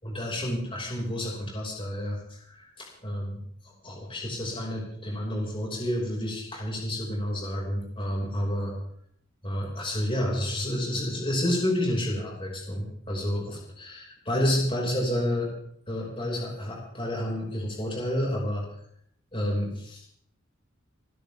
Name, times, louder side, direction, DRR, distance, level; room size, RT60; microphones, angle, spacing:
voice 1, 0.0-3.4 3.8-8.7 9.4-15.5 15.9-18.6 19.3-20.1, left 1 dB, 25° left, -3 dB, 5.8 m, -30 dB
29.0 x 12.5 x 3.6 m, 0.66 s
head